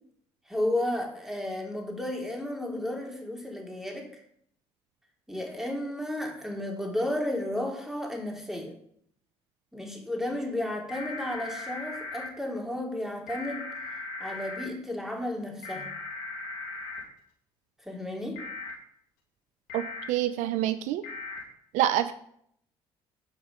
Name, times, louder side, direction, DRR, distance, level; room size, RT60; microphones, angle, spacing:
voice 1, 0.5-4.2 5.3-8.7 9.7-13.7 14.2-15.9 17.8-18.4, left 1 dB, 5° right, 1 dB, 3.2 m, -33 dB
sound 1, 10.9-12.3 13.3-14.6 15.6-17.0 18.4-18.7 19.7-20.0 21.0-21.4, left 3 dB, 85° left, 2.3 m, -38 dB
voice 2, 19.7-21.0 21.7-22.1, right 12 dB, 75° right, 12 dB, 0.5 m, -27 dB
8.7 x 5.1 x 6.8 m, 0.67 s
hypercardioid pair, 60°, 13 cm